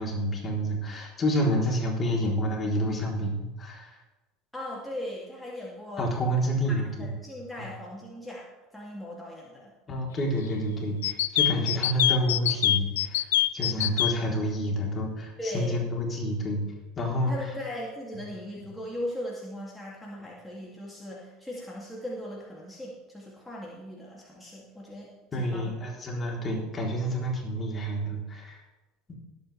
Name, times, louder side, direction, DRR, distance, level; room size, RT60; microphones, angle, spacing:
voice 1, 0.0-3.9 6.0-7.1 7.6-7.7 9.9-13.3 13.5-16.6 17.0-17.3 25.3-28.6 29.1-29.2, equal, 30° left, -2 dB, 3.9 m, -29 dB
voice 2, 4.5-6.1 6.8-8.5 8.7-9.7 15.4-15.8 17.3-25.8, left 1 dB, 5° left, -5 dB, 2.8 m, -38 dB
sound 1, 11.0-14.1, left 13 dB, 75° left, 0.4 m, -24 dB
20.0 x 8.6 x 3.5 m, 1.1 s
hypercardioid pair, 70°, 0 cm